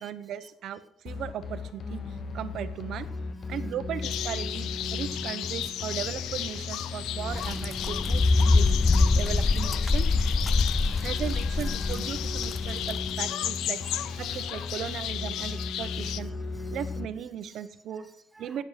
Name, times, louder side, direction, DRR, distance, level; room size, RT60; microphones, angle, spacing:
voice 1, 0.0-3.1 3.5-8.7 9.1-10.1 11.0-13.8 14.2-16.3 16.7-18.1 18.4-18.6, right 9 dB, 65° right, 12 dB, 0.9 m, -37 dB
sound 1, 1.1-17.1, left 3 dB, 40° left, 1.1 m, -36 dB
sound 2, 4.0-16.2, left 12 dB, 75° left, 0.6 m, -34 dB
sound 3, 7.3-13.0, left 3 dB, 20° left, 0.4 m, -25 dB
voice 2, 10.7-11.2 13.6-15.0 15.3-16.8 17.5-17.6 17.9-18.6, right 3 dB, 15° right, 8 dB, 0.9 m, -54 dB
12.0 x 9.2 x 5.8 m, 0.72 s
cardioid pair, 130°, 0 cm